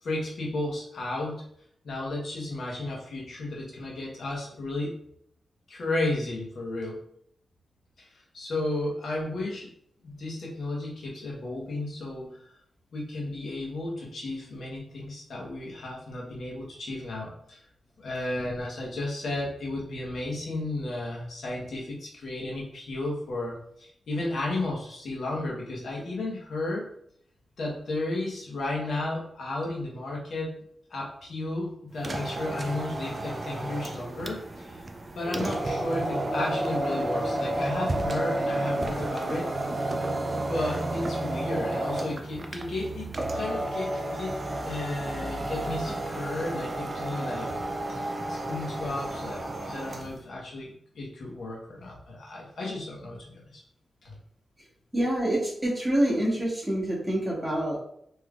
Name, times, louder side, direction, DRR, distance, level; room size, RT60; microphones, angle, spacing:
voice 1, 0.0-1.4 1.8-5.0 5.7-7.0 8.0-9.7 10.0-12.4 12.9-17.6 18.0-26.9 27.6-30.6 30.9-34.8 35.1-39.8 40.5-47.5 47.9-53.6 54.0-54.1, left 2 dB, 70° left, -3 dB, 1.1 m, -33 dB
sound 1, 31.9-50.2, right 1 dB, 30° right, 0.4 m, -31 dB
voice 2, 54.9-57.8, right 1 dB, 10° right, -6 dB, 1.4 m, -27 dB
3.4 x 2.9 x 2.4 m, 0.68 s
wide cardioid pair, 95°, 0 cm